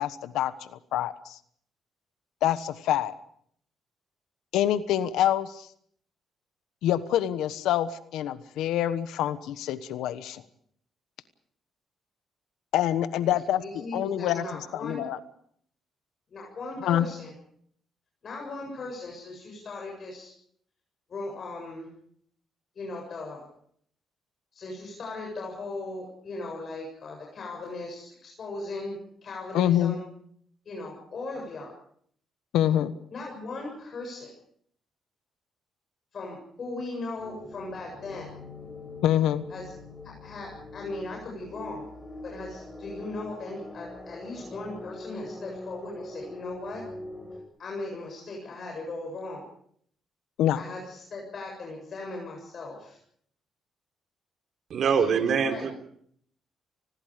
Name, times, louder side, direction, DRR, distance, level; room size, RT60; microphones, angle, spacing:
voice 1, 0.0-1.4 2.4-3.1 4.5-5.6 6.8-10.4 12.7-14.4 14.7-15.2 16.8-17.1 29.5-30.0 32.5-32.9 39.0-39.5 50.4-50.6, left 11 dB, 85° left, 13 dB, 1.2 m, -26 dB
voice 2, 13.6-15.0 16.3-17.3 18.2-20.3 21.1-21.9 22.8-23.5 24.5-29.0 29.2-30.0 30.7-31.7 33.1-34.3 36.1-38.3 39.5-39.7 40.0-41.8 42.2-46.8 47.6-49.4 50.5-53.0 55.0-55.7, left 2 dB, 50° left, -1 dB, 7.7 m, -38 dB
sound 1, 37.2-47.4, left 2 dB, 15° left, 5.7 m, -43 dB
voice 3, 54.7-55.7, right 6 dB, 60° right, 6 dB, 3.8 m, -24 dB
30.0 x 20.5 x 5.1 m, 0.65 s
cardioid pair, 90°, 0 cm